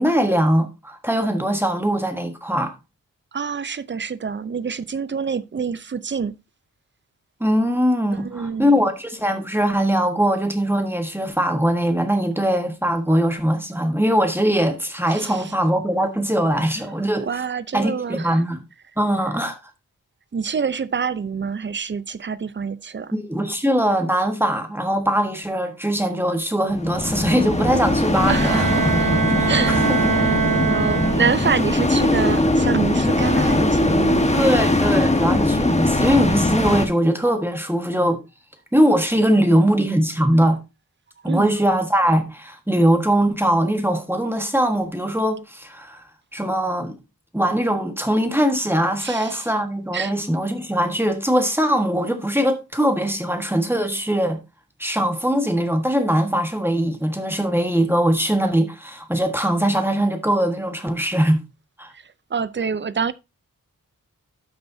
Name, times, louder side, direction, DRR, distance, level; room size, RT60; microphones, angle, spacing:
voice 1, 0.0-2.7 7.4-17.3 17.7-18.6 19.0-19.6 23.1-28.7 29.4-30.0 30.5-30.6 34.3-38.2 38.7-40.6 41.2-46.0 46.3-46.9 47.3-54.4 54.8-61.4 61.8-61.9, equal, 5° right, 1.4 m, -21 dB
voice 2, 3.3-6.3 8.1-8.7 15.1-15.5 17.2-18.4 20.3-23.1 28.3-30.3 30.6-34.3 41.2-41.5 49.0-49.5 49.9-50.1 61.9-63.1, right 6 dB, 35° right, 0.6 m, -27 dB
sound 1, 26.7-36.9, left 2 dB, 20° left, 1.4 m, -20 dB
Bowed string instrument, 28.2-31.7, right 6 dB, 75° right, 0.7 m, -23 dB
12.5 x 6.7 x 2.7 m
wide cardioid pair, 130°, 33 cm